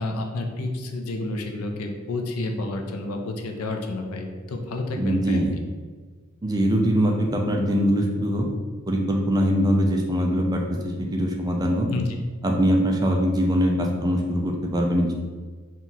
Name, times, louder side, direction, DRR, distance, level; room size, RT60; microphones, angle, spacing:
voice 1, 0.0-5.4 11.9-12.1, left 2 dB, 80° left, 3 dB, 0.5 m, -30 dB
voice 2, 4.9-5.5 6.4-8.5 8.9-11.9 12.4-15.2, equal, 15° right, 1 dB, 0.4 m, -22 dB
4.2 x 2.3 x 3.8 m, 1.5 s
head